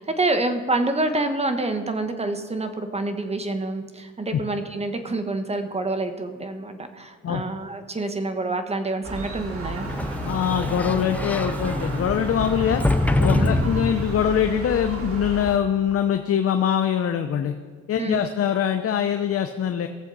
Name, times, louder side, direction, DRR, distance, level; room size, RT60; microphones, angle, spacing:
voice 1, 0.0-9.9 13.3-13.5 18.0-18.2, right 2 dB, 20° right, 7 dB, 1.2 m, -27 dB
Gull seagull, 9.0-15.6, right 3 dB, 50° right, 1.5 m, -33 dB
Sliding door, 9.7-14.4, left 2 dB, 5° left, 0.6 m, -25 dB
voice 2, 10.2-12.8 13.2-17.5 17.9-19.9, left 9 dB, 50° left, 7 dB, 0.7 m, -23 dB
18.5 x 7.2 x 4.0 m, 1.5 s
cardioid pair, 90°, 30 cm